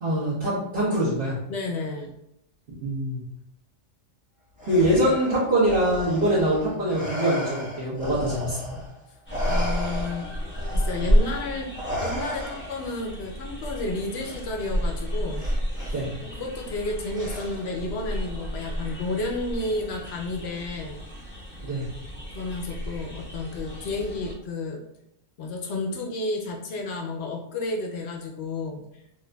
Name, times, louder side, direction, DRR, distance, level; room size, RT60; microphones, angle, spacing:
voice 1, 0.0-1.4 2.8-3.2 4.7-8.8 15.9-16.1 21.6-21.8, right 1 dB, 45° right, -12 dB, 1.3 m, -24 dB
voice 2, 1.5-2.1 9.5-10.2 10.7-15.4 16.3-21.0 22.3-24.8 25.4-28.9, left 2 dB, 65° left, 2 dB, 0.8 m, -31 dB
Respiratory sounds, 4.6-8.9 9.3-12.9 14.2-14.4 15.4-15.9 17.1-17.8, equal, 5° right, 1.0 m, -34 dB
sound 1, 9.3-24.3, equal, 15° left, 0.5 m, -30 dB
4.4 x 2.6 x 2.2 m, 0.80 s
omnidirectional pair, 1.3 m